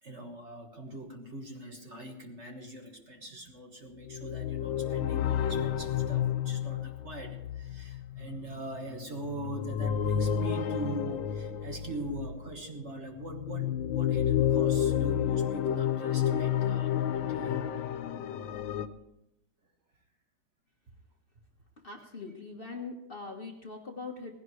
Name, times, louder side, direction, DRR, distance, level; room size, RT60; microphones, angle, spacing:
voice 1, 0.0-17.7, right 2 dB, 40° right, 2 dB, 1.7 m, -41 dB
sound 1, 4.0-12.5 13.2-18.9, left 9 dB, 85° left, 1.5 m, -30 dB
voice 2, 21.8-24.3, left 3 dB, 35° left, 1 dB, 1.4 m, -42 dB
18.5 x 16.5 x 3.2 m, 0.87 s
omnidirectional pair, 2.0 m